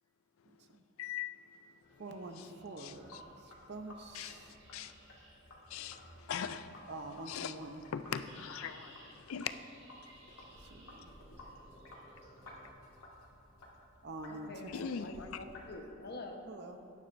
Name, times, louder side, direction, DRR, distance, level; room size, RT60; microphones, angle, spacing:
voice 1, 0.5-0.8 2.0-4.5 6.9-7.8 10.6-11.1 14.0-14.5 16.5-16.8, right 2 dB, 50° right, 6 dB, 0.7 m, -46 dB
voice 2, 1.0-1.5 1.9-2.0 2.4-2.5 2.8-3.2 4.1-4.9 5.7-6.9 7.3-7.6 7.9-9.6 14.7-15.4, left 7 dB, 70° left, 11 dB, 0.4 m, -41 dB
sound 1, 1.8-12.7, right 1 dB, 30° right, 2.6 m, -61 dB
Sink (filling or washing), 2.9-15.8, left 1 dB, 90° left, 1.9 m, -56 dB
voice 3, 14.3-16.4, left 2 dB, 50° left, 3 dB, 1.0 m, -46 dB
18.0 x 9.7 x 2.6 m, 2.8 s
head